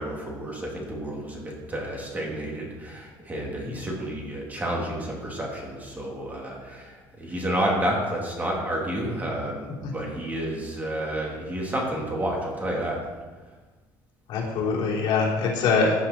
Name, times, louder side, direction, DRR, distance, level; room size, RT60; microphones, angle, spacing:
voice 1, 0.0-13.0, right 1 dB, 20° right, -2 dB, 3.1 m, -30 dB
voice 2, 14.3-16.1, left 4 dB, 65° left, -3 dB, 3.7 m, -23 dB
16.0 x 9.4 x 4.5 m, 1.3 s
cardioid pair, 135°, 9 cm